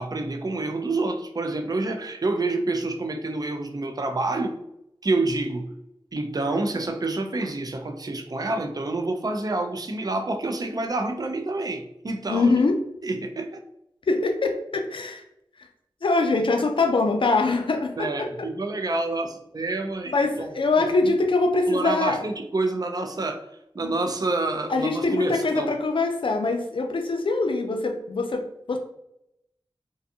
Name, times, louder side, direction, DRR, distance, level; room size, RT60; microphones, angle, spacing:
voice 1, 0.0-4.6 5.0-5.7 6.1-12.5 13.0-13.6 18.0-21.1 21.7-23.5 23.7-25.7, right 2 dB, 40° right, 4 dB, 0.4 m, -28 dB
voice 2, 12.3-12.8 14.1-15.2 16.0-18.3 20.1-22.3 23.8-23.9 24.7-28.8, left 3 dB, 65° left, 5 dB, 0.4 m, -23 dB
2.5 x 2.3 x 2.6 m, 0.80 s
wide cardioid pair, 70°, 9 cm